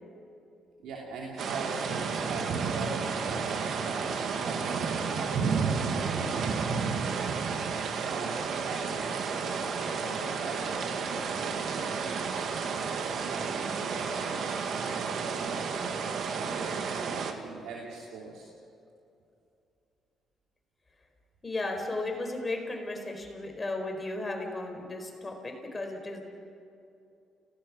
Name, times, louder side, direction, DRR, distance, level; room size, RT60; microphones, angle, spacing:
voice 1, 0.8-13.6 13.9-18.4, right 4 dB, 90° right, -2 dB, 2.9 m, -43 dB
sound 1, 1.4-17.3, right 5 dB, 65° right, 2.0 m, -31 dB
voice 2, 21.4-26.2, left 2 dB, 25° left, 3 dB, 4.6 m, -35 dB
30.0 x 18.0 x 6.3 m, 2.6 s
cardioid pair, 90°, 0 cm